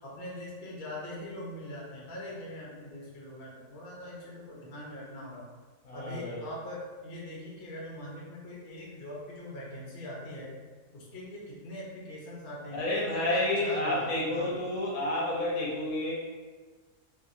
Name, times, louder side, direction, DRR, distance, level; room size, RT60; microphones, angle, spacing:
voice 1, 0.0-5.4 5.9-10.5 10.9-14.5, left 1 dB, 50° left, -5 dB, 0.7 m, -42 dB
voice 2, 5.8-6.4 12.7-16.1, left 1 dB, 70° left, -4 dB, 1.0 m, -30 dB
2.8 x 2.6 x 2.5 m, 1.4 s
omnidirectional pair, 1.7 m